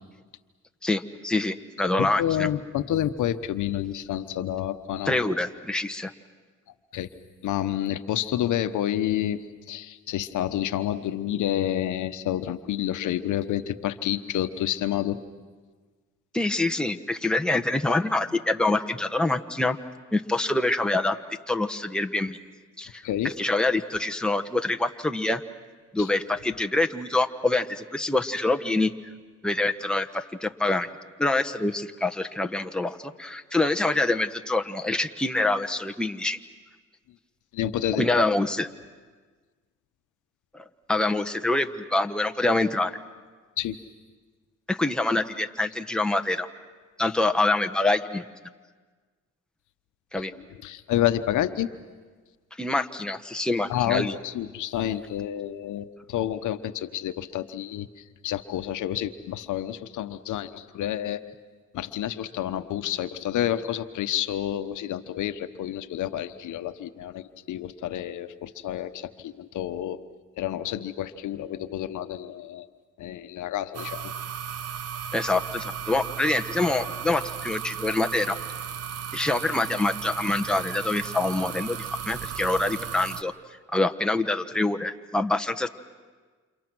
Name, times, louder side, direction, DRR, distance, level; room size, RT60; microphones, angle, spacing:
voice 1, 0.8-2.5 5.1-6.1 16.3-19.8 20.1-21.2 21.5-22.4 22.8-23.0 23.4-25.4 25.9-28.9 29.4-30.9 31.2-36.4 38.0-38.7 40.9-43.0 44.7-46.5 47.0-48.2 50.1-50.3 52.6-54.1 75.1-78.4 79.1-83.3 83.7-85.7, left 2 dB, 5° left, 6 dB, 1.2 m, -25 dB
voice 2, 2.0-5.4 6.9-7.1 7.4-15.2 23.0-23.3 26.0-26.1 37.5-38.1 43.6-43.8 50.6-51.7 53.7-61.2 61.7-70.0 70.4-72.7 73.0-74.1, left 11 dB, 80° left, 10 dB, 1.0 m, -29 dB
sound 1, 73.7-83.2, right 8 dB, 55° right, 1.0 m, -35 dB
29.5 x 28.0 x 6.2 m, 1.4 s
cardioid pair, 90°, 30 cm